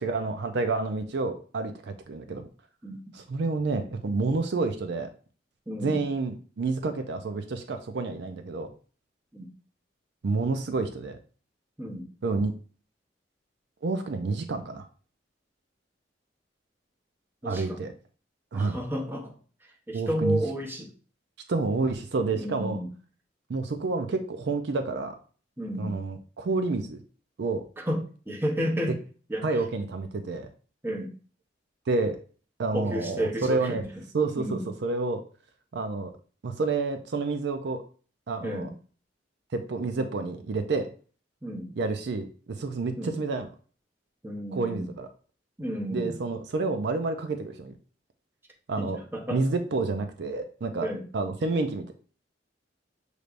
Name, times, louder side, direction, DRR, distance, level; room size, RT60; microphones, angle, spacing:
voice 1, 0.0-2.4 3.1-5.1 5.8-8.7 10.2-11.2 12.2-12.5 13.8-14.9 17.4-17.9 18.5-18.8 19.9-20.4 21.5-22.8 23.5-25.2 25.8-27.0 27.4-27.6 29.4-30.5 31.9-32.2 32.6-33.8 34.1-35.2 35.7-36.1 36.4-37.8 38.3-38.7 39.5-40.9 41.8-42.3 42.6-43.5 44.5-45.1 45.9-47.7 48.7-49.0 49.3-51.9, right 3 dB, 65° right, 8 dB, 0.5 m, -29 dB
voice 2, 5.7-6.1 9.3-9.5 11.8-12.1 17.4-17.8 18.5-19.3 19.6-20.9 22.3-22.9 25.6-25.9 27.8-28.9 29.3-29.5 30.8-31.1 32.7-33.8 34.4-34.6 38.4-38.7 41.4-41.7 43.0-43.2 44.2-44.9 45.6-46.2 48.8-49.4 50.8-51.0, equal, 15° right, 1 dB, 0.8 m, -32 dB
6.5 x 3.3 x 2.5 m, 0.40 s
head